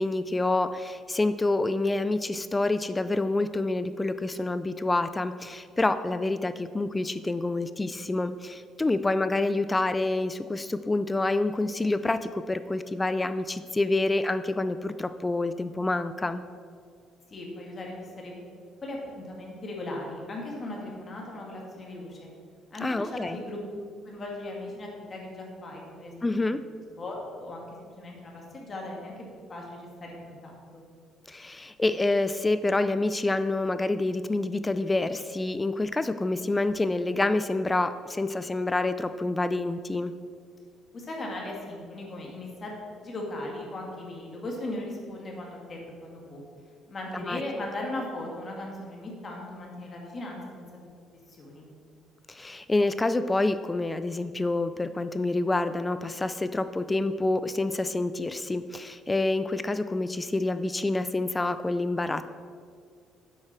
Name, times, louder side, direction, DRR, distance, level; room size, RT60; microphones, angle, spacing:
voice 1, 0.0-16.4 22.8-23.4 26.2-26.6 31.3-40.1 47.1-47.4 52.3-62.3, left 2 dB, 15° left, 12 dB, 0.3 m, -27 dB
voice 2, 17.3-18.5 18.8-22.3 22.7-23.7 24.0-26.6 27.0-29.2 29.5-30.8 40.9-46.4 46.9-50.9 51.3-51.6, left 1 dB, 35° left, -1 dB, 2.3 m, -38 dB
9.5 x 8.0 x 4.4 m, 2.1 s
cardioid pair, 115°, 0 cm